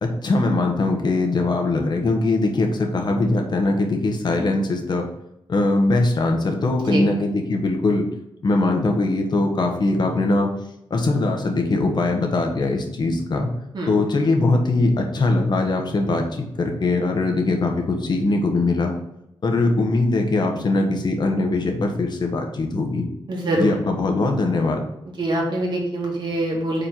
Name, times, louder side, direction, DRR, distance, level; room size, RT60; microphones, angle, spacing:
voice 1, 0.0-5.1 5.5-8.1 8.4-10.5 10.9-13.5 13.9-18.9 19.4-23.0 23.6-24.8, left 2 dB, 50° left, 3 dB, 1.3 m, -21 dB
voice 2, 23.3-23.8 25.2-26.9, right 1 dB, 55° right, -2 dB, 2.1 m, -24 dB
5.1 x 4.3 x 5.7 m, 0.82 s
cardioid pair, 100°, 9 cm